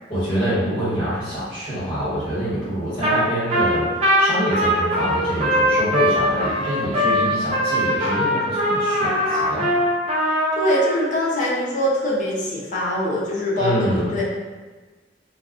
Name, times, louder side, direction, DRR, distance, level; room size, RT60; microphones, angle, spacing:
voice 1, 0.1-3.9 4.2-9.7 13.5-14.1, equal, 25° left, -12 dB, 1.2 m, -25 dB
Trumpet, 3.0-3.2 3.5-10.9, equal, 35° right, 0.5 m, -21 dB
voice 2, 10.5-14.2, left 1 dB, 45° left, -5 dB, 0.7 m, -23 dB
2.4 x 2.3 x 3.5 m, 1.3 s
head